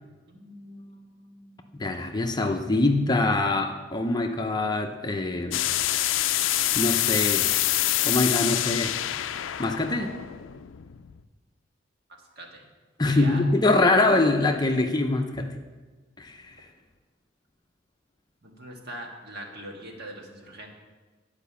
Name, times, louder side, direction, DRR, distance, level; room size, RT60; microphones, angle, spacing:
voice 1, 0.3-2.1 12.3-12.6 13.1-13.4 18.4-20.7, right 1 dB, 60° right, 1 dB, 1.7 m, -42 dB
voice 2, 1.7-5.6 6.8-7.5 8.0-9.0 9.6-10.1 13.0-15.5 16.2-16.6, left 2 dB, 20° left, 4 dB, 0.6 m, -24 dB
sound 1, 5.5-11.2, left 13 dB, 85° left, 0.4 m, -26 dB
10.5 x 5.1 x 6.9 m, 1.3 s
head